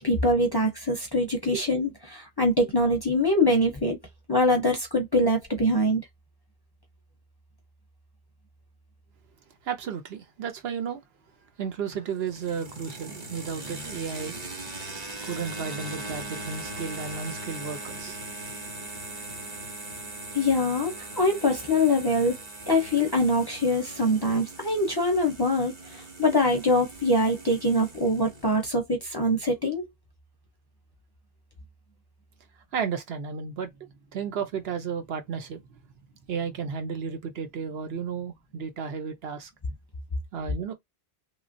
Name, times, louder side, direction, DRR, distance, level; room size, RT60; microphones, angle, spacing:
voice 1, 0.0-4.0 4.3-6.0 20.3-22.4 22.7-29.8, left 1 dB, 30° left, 0.6 m, -24 dB
voice 2, 9.6-11.0 11.6-14.4 15.2-18.2 32.7-35.8 36.3-39.5 40.3-40.7, right 6 dB, 70° right, 1.0 m, -33 dB
sound 1, 11.9-28.7, right 2 dB, 40° right, 1.0 m, -40 dB
3.1 x 2.4 x 2.5 m
omnidirectional pair, 1.1 m